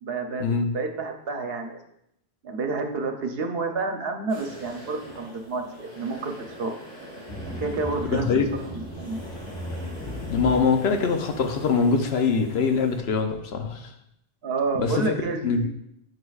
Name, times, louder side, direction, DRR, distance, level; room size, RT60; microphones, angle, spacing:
voice 1, 0.0-1.8 2.4-6.7 7.4-8.2 8.7-9.2 14.4-15.7, right 3 dB, 70° right, 4 dB, 1.0 m, -30 dB
sound 1, 4.3-13.0, equal, 40° left, 1.8 m, -43 dB
sound 2, 7.3-11.8, equal, 5° left, 1.1 m, -37 dB
voice 2, 8.0-8.5 10.3-13.9 14.8-15.2 15.4-15.7, left 5 dB, 85° left, 5 dB, 1.0 m, -23 dB
9.5 x 4.7 x 2.4 m, 0.77 s
omnidirectional pair, 1.0 m